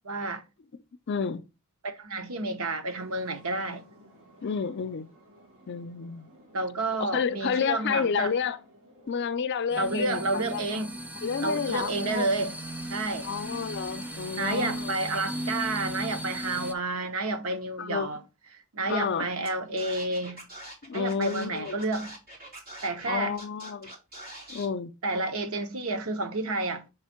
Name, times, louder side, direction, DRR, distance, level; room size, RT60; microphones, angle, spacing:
voice 1, 0.0-0.4 1.8-3.8 6.5-8.3 9.8-10.9 11.4-12.6 12.9-13.3 14.4-18.2 18.7-20.4 20.9-22.2 22.8-23.3 25.0-26.9, right 2 dB, 85° right, 1.0 m, -30 dB
voice 2, 1.1-1.5 4.4-5.1 5.7-6.3 7.0-8.6 9.1-10.8 11.2-12.3 13.2-14.9 17.8-18.1 18.9-19.3 20.8-21.8 23.1-23.9 24.5-24.9, left 6 dB, 55° left, 0.5 m, -30 dB
sound 1, 2.9-9.3, equal, 70° right, 2.3 m, -56 dB
sound 2, 9.7-16.7, right 1 dB, 5° right, 0.5 m, -37 dB
Scratching (performance technique), 19.4-19.5 19.8-23.1 23.4-24.7, right 1 dB, 45° right, 2.8 m, -44 dB
6.5 x 3.5 x 4.3 m
head